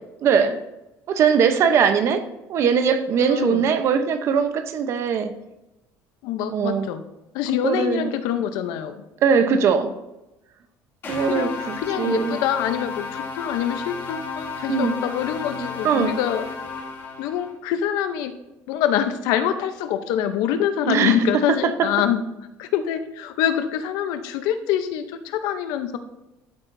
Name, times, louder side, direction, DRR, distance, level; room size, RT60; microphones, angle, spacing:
voice 1, 0.2-0.6 1.1-2.2 2.5-5.3 6.5-6.9 7.6-8.1 9.2-9.9 11.1-12.4 14.7-14.9 15.8-16.2 20.9-21.2 21.5-21.6, right 6 dB, 45° right, 9 dB, 0.8 m, -20 dB
voice 2, 3.2-3.6 6.2-7.0 7.3-9.0 11.3-16.5 17.2-18.4 18.7-22.2 22.6-26.0, left 10 dB, 80° left, 10 dB, 0.8 m, -25 dB
sound 1, 11.0-17.5, left 4 dB, 35° left, 2.3 m, -33 dB
12.0 x 8.8 x 2.7 m, 0.96 s
cardioid pair, 145°, 6 cm